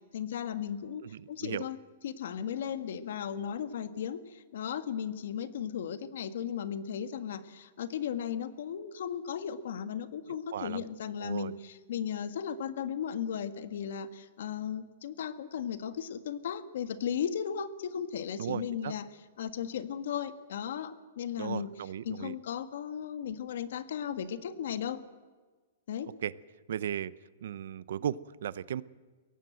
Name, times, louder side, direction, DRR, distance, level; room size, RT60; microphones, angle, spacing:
voice 1, 0.1-1.0 1.3-1.8 2.0-19.1 19.4-21.8 22.0-25.0 25.9-26.1, left 8 dB, 65° left, 10 dB, 1.5 m, -36 dB
voice 2, 1.0-1.6 10.5-10.9 11.2-11.5 18.4-18.9 21.4-22.3 26.2-26.3 26.7-27.1 27.4-28.8, right 9 dB, 70° right, 18 dB, 0.7 m, -36 dB
23.0 x 17.5 x 7.8 m, 1.4 s
hypercardioid pair, 165°, 0 cm